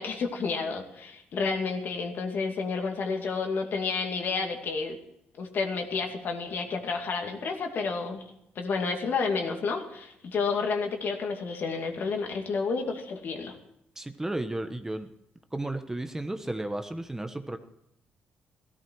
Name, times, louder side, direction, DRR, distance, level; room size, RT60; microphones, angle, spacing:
voice 1, 0.0-5.0 5.4-8.2 8.6-13.5, left 4 dB, 60° left, 3 dB, 2.4 m, -30 dB
voice 2, 14.0-15.1 15.5-17.6, right 1 dB, 10° right, 8 dB, 1.0 m, -33 dB
16.0 x 14.0 x 4.7 m, 0.80 s
cardioid pair, 90°, 4 cm